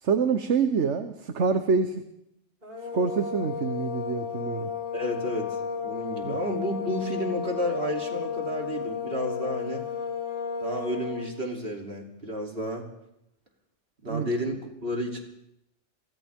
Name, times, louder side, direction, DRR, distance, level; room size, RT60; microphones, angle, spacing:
voice 1, 0.0-1.9 2.9-4.7 6.2-6.4 14.0-14.3, right 5 dB, 75° right, 8 dB, 1.3 m, -26 dB
sound 1, 2.6-11.3, left 7 dB, 35° right, 4.1 m, -33 dB
voice 2, 4.9-5.5 5.8-9.8 10.6-12.8 14.0-15.2, equal, 55° right, 1 dB, 3.5 m, -31 dB
30.0 x 24.0 x 3.7 m, 0.80 s
omnidirectional pair, 1.2 m